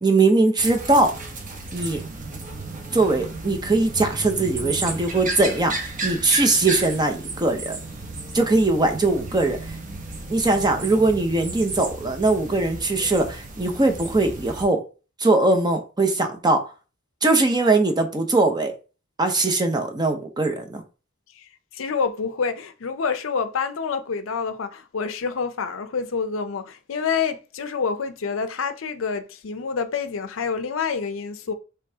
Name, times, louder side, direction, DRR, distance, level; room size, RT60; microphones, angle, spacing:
voice 1, 0.0-1.1 1.7-2.0 2.9-7.8 8.3-9.8 10.3-14.8 15.2-16.6 17.2-18.7 19.2-20.8, right 2 dB, 20° right, 0.7 m, -21 dB
sound 1, 0.6-14.6, right 3 dB, 45° right, 0.9 m, -34 dB
voice 2, 21.7-31.5, left 5 dB, 85° left, 0.5 m, -27 dB
5.3 x 3.4 x 2.8 m
head